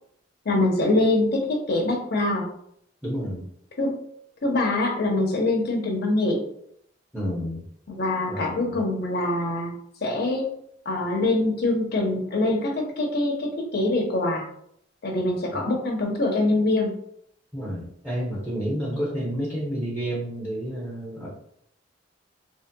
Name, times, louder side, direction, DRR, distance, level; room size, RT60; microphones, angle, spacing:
voice 1, 0.5-2.4 3.8-3.9 4.4-6.4 7.9-9.7 10.0-10.5 10.9-14.5 15.0-16.9, left 2 dB, 55° left, 0 dB, 0.7 m, -24 dB
voice 2, 3.0-3.4 7.1-7.6 8.3-8.8 17.5-21.3, equal, 5° right, -7 dB, 0.7 m, -30 dB
3.1 x 2.8 x 2.2 m, 0.70 s
head